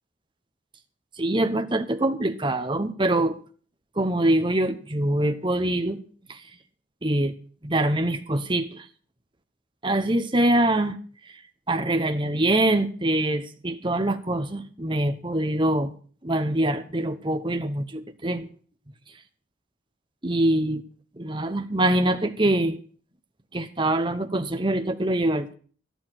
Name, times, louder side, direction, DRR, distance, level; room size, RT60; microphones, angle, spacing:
voice 1, 1.2-3.4 4.0-6.0 6.3-6.4 7.0-7.3 7.6-8.8 9.8-11.0 11.7-15.9 16.2-18.5 20.2-20.8 21.2-22.8 23.5-25.5, right 1 dB, 25° right, 1.0 m, -24 dB
13.0 x 11.5 x 6.1 m
head